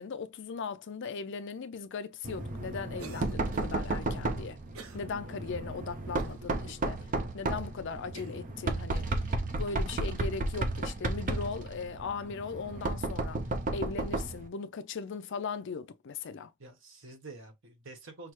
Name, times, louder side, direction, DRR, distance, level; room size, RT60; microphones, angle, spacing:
voice 1, 0.0-4.6 4.9-7.1 7.3-9.2 9.6-13.4 13.7-16.5, left 5 dB, 55° left, 0.4 m, -38 dB
Knock, 2.2-14.5, right 2 dB, 40° right, 0.6 m, -33 dB
Cough, 3.0-3.8 4.7-5.1 5.5-5.6 6.2-6.8 7.4-7.5 8.1-8.5, right 4 dB, 80° right, 0.8 m, -49 dB
voice 2, 5.0-5.4 16.6-18.3, right 3 dB, 65° right, 1.1 m, -48 dB
5.9 x 2.0 x 3.1 m
head